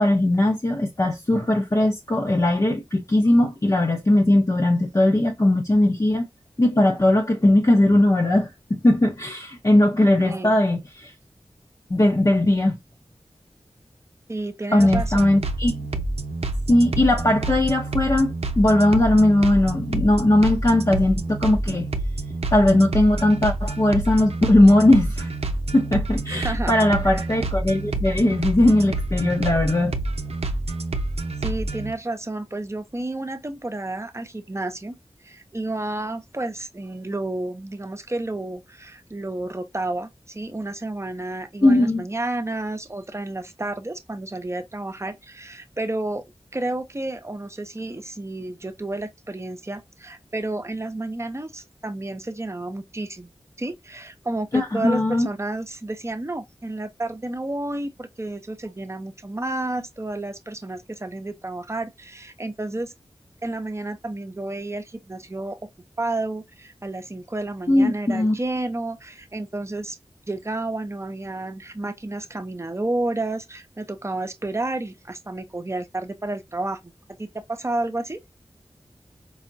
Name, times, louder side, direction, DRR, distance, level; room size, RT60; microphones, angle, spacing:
voice 1, 0.0-6.3 6.6-8.5 8.8-11.1 11.9-12.7 14.7-15.7 16.7-21.9 22.5-25.3 25.7-30.0 41.6-42.0 54.5-55.3 67.7-68.4, left 1 dB, 35° left, 0.8 m, -19 dB
voice 2, 10.2-10.6 14.3-15.3 26.3-27.3 31.4-34.9 35.2-46.2 46.5-53.3 53.6-62.9 63.4-65.6 66.0-70.0 70.3-76.9 77.2-78.2, right 2 dB, 25° right, 0.7 m, -31 dB
sound 1, 14.8-31.9, right 2 dB, 85° right, 0.6 m, -28 dB
4.7 x 2.1 x 2.6 m
wide cardioid pair, 45°, 10 cm